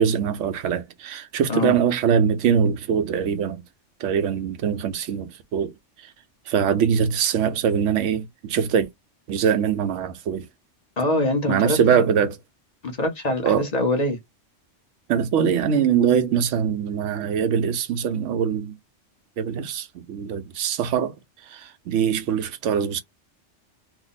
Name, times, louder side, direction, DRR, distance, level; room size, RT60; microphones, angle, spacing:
voice 1, 0.0-3.6 4.0-5.7 6.5-8.9 9.3-10.4 11.5-12.4 13.4-13.7 15.1-18.7 19.4-21.1 21.5-23.0, right 7 dB, 80° right, 1.0 m, -22 dB
voice 2, 11.0-11.8 12.8-14.2, left 1 dB, 40° left, 0.8 m, -23 dB
2.8 x 2.1 x 3.9 m
omnidirectional pair, 1.2 m